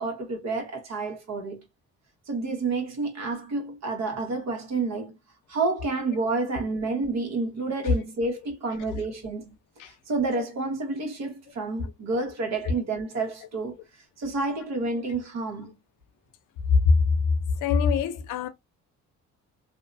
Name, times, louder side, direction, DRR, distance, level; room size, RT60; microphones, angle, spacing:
voice 1, 0.0-1.7 2.3-5.2 5.5-9.6 9.8-13.8 14.2-15.8, right 3 dB, 60° right, 1.2 m, -29 dB
voice 2, 17.6-18.5, left 5 dB, 85° left, 0.6 m, -23 dB
2.7 x 2.2 x 2.5 m
cardioid pair, 90°, 30 cm